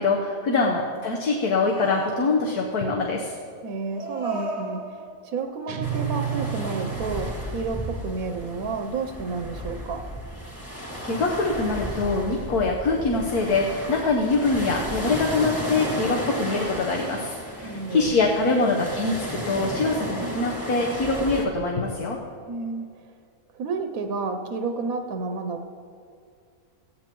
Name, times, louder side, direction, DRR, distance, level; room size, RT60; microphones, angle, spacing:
voice 1, 0.0-3.3 10.7-22.2, left 3 dB, 75° left, 0 dB, 1.6 m, -24 dB
sound 1, 1.6-2.7 3.9-5.2 5.7-6.1 6.3-7.3 7.9-8.0, right 2 dB, 30° left, 2.4 m, -36 dB
voice 2, 3.6-10.1 17.6-18.2 20.2-20.4 22.5-23.1 23.5-25.7, right 4 dB, 70° right, 6 dB, 1.2 m, -31 dB
sound 2, 5.7-7.7, right 9 dB, 85° right, 1.3 m, -31 dB
sound 3, 5.8-21.4, equal, 10° left, 1.9 m, -34 dB
18.0 x 16.0 x 3.0 m, 2.3 s
omnidirectional pair, 1.6 m